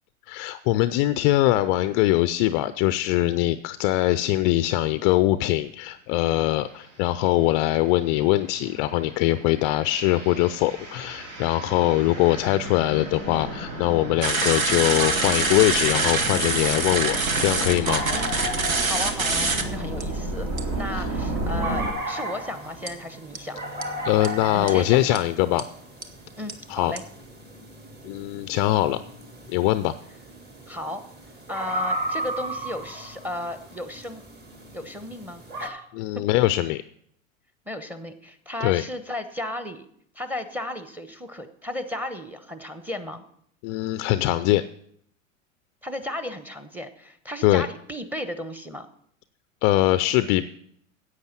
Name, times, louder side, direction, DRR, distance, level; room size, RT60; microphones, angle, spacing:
voice 1, 0.3-18.0 20.9-21.0 24.0-25.6 26.7-26.9 28.0-29.0 29.5-29.9 35.9-36.8 38.6-38.8 43.6-44.6 47.4-47.7 49.6-50.4, left 16 dB, 40° left, 13 dB, 0.4 m, -22 dB
sound 1, 6.6-6.9 7.4-21.9, right 1 dB, 65° right, 3.8 m, -34 dB
sound 2, 14.2-19.6 20.0-20.1 20.6-20.8 22.9-23.0 23.3-23.4 23.8-23.9 24.2-24.3 24.7-24.8 25.1-25.2 25.6-25.7 26.0-26.1 26.5-26.6 27.0-27.1, right 3 dB, 90° right, 1.2 m, -25 dB
sound 3, 17.8-35.7, right 1 dB, 25° right, 2.3 m, -36 dB
voice 2, 18.8-20.5 20.8-23.6 24.5-25.0 26.4-27.0 30.7-31.0 31.5-34.2 34.7-35.9 36.1-36.3 37.7-39.9 40.1-43.2 45.8-48.9, left 1 dB, 5° right, 10 dB, 1.0 m, -34 dB
10.5 x 8.2 x 5.9 m, 0.69 s
hypercardioid pair, 90°, 40 cm